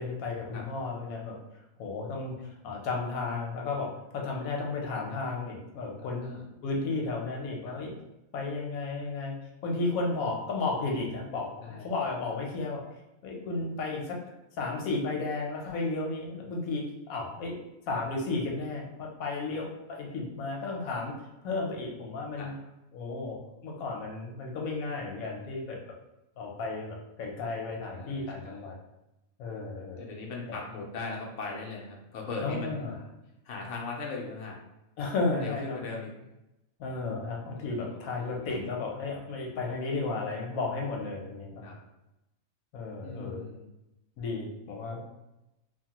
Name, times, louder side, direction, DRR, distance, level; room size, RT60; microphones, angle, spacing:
voice 1, 0.0-1.4 1.8-6.4 6.6-7.9 8.3-12.8 13.2-14.2 14.6-17.6 17.9-21.1 21.4-22.5 22.9-25.8 26.4-28.7 29.4-30.0 30.5-30.6 32.4-33.0 35.0-35.8 36.8-41.7 42.7-43.4 44.2-45.0, left 3 dB, 90° left, 0 dB, 1.1 m, -33 dB
voice 2, 6.0-6.5 7.7-7.8 11.6-11.9 22.4-22.5 27.9-28.6 30.0-33.0 33.4-34.6 35.4-36.3 37.8-38.5 41.6-41.8 43.0-43.7, left 3 dB, 65° left, -1 dB, 0.9 m, -39 dB
3.0 x 2.1 x 2.8 m, 0.95 s
omnidirectional pair, 1.4 m